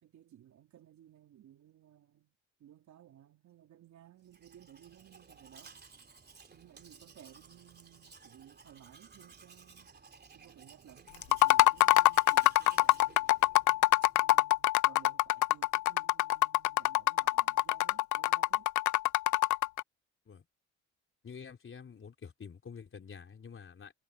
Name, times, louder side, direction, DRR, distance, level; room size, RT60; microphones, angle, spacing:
voice 1, 0.0-2.3 2.6-5.8 6.5-10.0 10.3-13.5 14.2-18.7, right 11 dB, 70° right, 3.4 m, -58 dB
Domestic sounds home sounds, 4.2-14.3, right 5 dB, 35° right, 3.2 m, -57 dB
sound 1, 11.2-19.8, left 17 dB, 75° left, 0.5 m, -25 dB
voice 2, 21.2-23.9, left 6 dB, 45° left, 4.2 m, -48 dB
cardioid pair, 90°, 30 cm